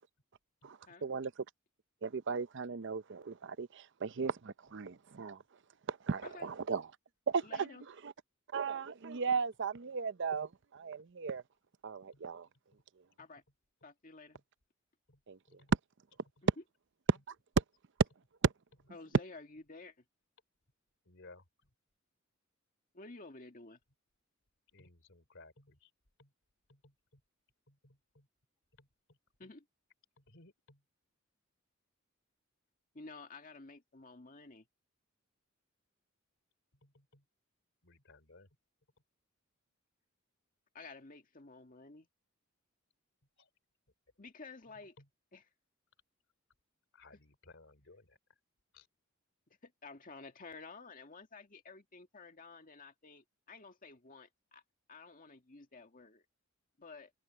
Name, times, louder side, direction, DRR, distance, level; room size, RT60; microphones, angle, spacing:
voice 1, 0.6-1.3 2.0-5.4 5.9-6.8 7.3-7.7 8.0-8.1 8.5-11.4 11.8-12.5 15.3-15.6 17.1-17.6 18.4-18.5, right 5 dB, 60° right, 0.6 m, -36 dB
voice 2, 7.4-7.8 13.2-13.4 13.8-14.4 18.9-20.0 22.9-23.8 29.4-29.7 32.9-34.7 40.7-42.1 44.2-45.0 45.3-45.5 49.6-54.6 54.9-56.3 56.8-57.1, left 3 dB, 40° left, 2.0 m, -52 dB
voice 3, 21.1-21.4 24.7-25.9 26.2-26.3 26.7-27.2 27.7-28.3 28.8-29.2 30.2-30.8 36.8-37.2 37.8-38.5 43.4-43.5 45.0-45.1 46.9-48.2 48.7-48.9, left 2 dB, 60° left, 3.1 m, -60 dB
head